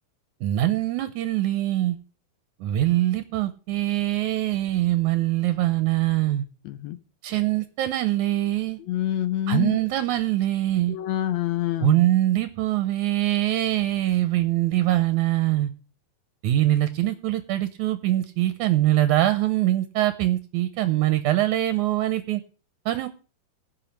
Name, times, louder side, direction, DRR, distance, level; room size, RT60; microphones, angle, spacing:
voice 1, 0.4-2.0 2.6-6.4 7.2-8.8 9.5-11.0 11.8-15.7 16.4-22.4 22.9-23.1, right 14 dB, 75° right, 11 dB, 2.2 m, -23 dB
voice 2, 6.6-7.0 8.9-9.8 10.9-12.0, left 12 dB, 70° left, 11 dB, 1.7 m, -26 dB
16.5 x 5.6 x 5.9 m, 0.37 s
omnidirectional pair, 3.8 m